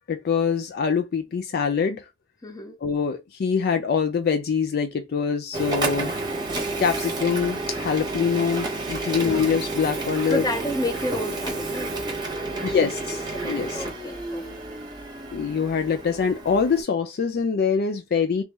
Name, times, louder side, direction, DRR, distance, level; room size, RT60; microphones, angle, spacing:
voice 1, 0.1-2.1 2.8-6.1 6.8-10.5 12.6-13.8 15.3-18.4, left 6 dB, 55° left, 0.4 m, -24 dB
voice 2, 2.4-2.8 9.1-9.4 10.3-12.1 12.5-12.8 13.3-14.4, equal, 20° left, 0.7 m, -31 dB
Printer, 5.5-16.8, right 2 dB, 20° right, 0.9 m, -30 dB
2.9 x 2.7 x 3.6 m
head